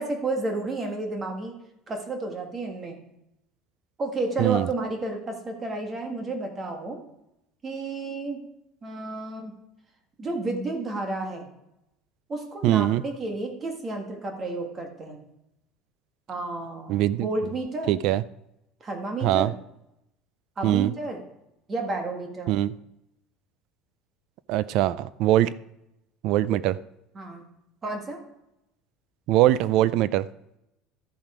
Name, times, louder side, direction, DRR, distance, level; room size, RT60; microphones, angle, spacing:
voice 1, 0.0-1.5 1.9-3.0 4.0-7.0 7.6-8.4 8.8-9.5 10.2-11.5 12.3-15.3 16.3-17.9 18.8-19.5 20.6-21.2 21.7-22.5 27.1-27.5 27.8-28.2, right 2 dB, 20° right, 3 dB, 1.6 m, -31 dB
voice 2, 12.6-13.0 16.9-17.3 17.9-18.2 19.2-19.5 20.6-20.9 22.5-22.7 24.5-25.5 26.2-26.7 29.3-30.3, right 14 dB, 50° right, 18 dB, 0.3 m, -22 dB
13.0 x 7.4 x 4.9 m, 0.86 s
cardioid pair, 170°, 0 cm